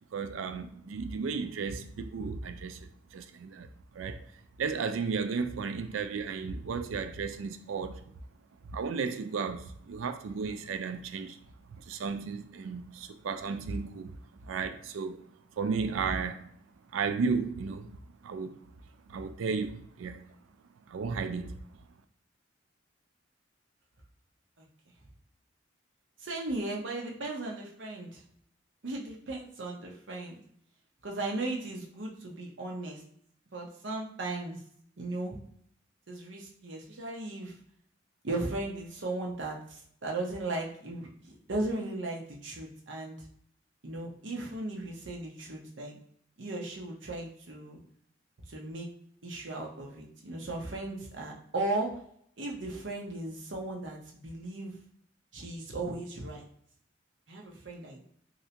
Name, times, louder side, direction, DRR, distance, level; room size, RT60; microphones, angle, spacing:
voice 1, 0.1-3.7 3.9-4.3 4.6-8.0 8.7-11.4 11.7-14.2 14.4-15.2 15.6-16.4 16.9-18.0 18.2-18.6 19.1-20.2 20.9-21.6, right 5 dB, 85° right, 0.4 m, -34 dB
voice 2, 26.2-28.2 28.8-30.4 31.0-33.0 33.5-34.6 35.0-35.4 36.1-37.5 38.2-43.2 43.8-46.0 46.4-47.8 48.5-48.9 49.2-51.9 52.4-54.8 55.3-56.5 57.3-58.0, right 2 dB, 70° right, 0.8 m, -36 dB
3.2 x 2.7 x 2.8 m
head